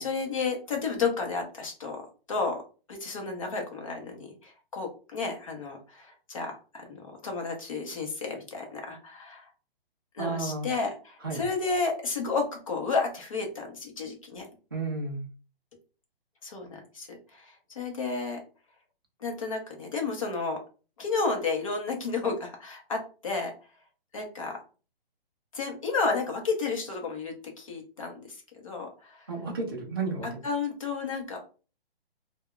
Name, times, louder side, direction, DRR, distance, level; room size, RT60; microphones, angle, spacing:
voice 1, 0.0-2.6 2.9-9.5 10.1-14.4 16.4-18.4 19.2-20.6 21.0-23.5 24.1-24.6 25.5-29.3 30.2-31.4, left 4 dB, 35° left, 2 dB, 0.7 m, -32 dB
voice 2, 10.2-10.7 11.2-11.4 14.7-15.2 29.3-30.3, right 3 dB, 25° right, -2 dB, 0.4 m, -32 dB
2.2 x 2.2 x 3.6 m, 0.35 s
hypercardioid pair, 170°, 30 cm